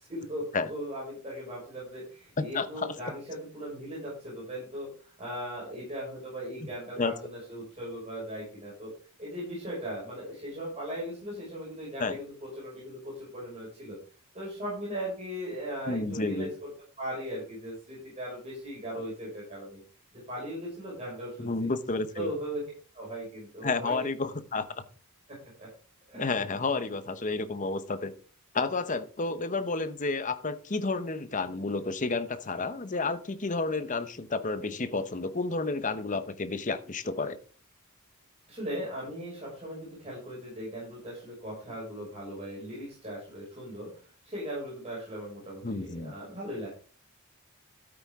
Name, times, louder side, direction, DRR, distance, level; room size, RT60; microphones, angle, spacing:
voice 1, 0.0-8.9 9.2-14.0 14.3-16.7 17.0-19.8 20.3-21.7 22.2-22.6 22.9-24.1 25.3-25.7 26.1-26.3 38.5-46.7, equal, 30° right, -5 dB, 5.9 m, -38 dB
voice 2, 2.5-2.9 7.0-7.1 12.0-12.2 15.9-16.5 21.4-22.3 23.6-24.7 26.2-28.1 28.5-37.4 45.6-46.1, left 3 dB, 35° left, 11 dB, 0.9 m, -31 dB
13.0 x 8.8 x 3.7 m, 0.40 s
head